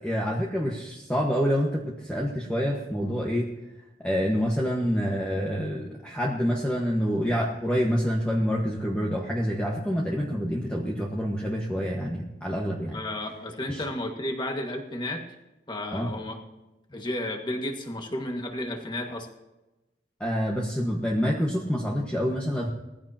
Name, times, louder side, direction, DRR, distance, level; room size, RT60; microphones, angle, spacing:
voice 1, 0.0-3.5 4.0-12.9 13.7-13.8 15.9-16.1 20.2-22.7, equal, 5° left, -3 dB, 1.5 m, -27 dB
voice 2, 12.9-15.2 15.7-16.4 16.9-19.3, left 1 dB, 25° left, 2 dB, 1.8 m, -32 dB
20.5 x 15.5 x 2.9 m, 0.99 s
head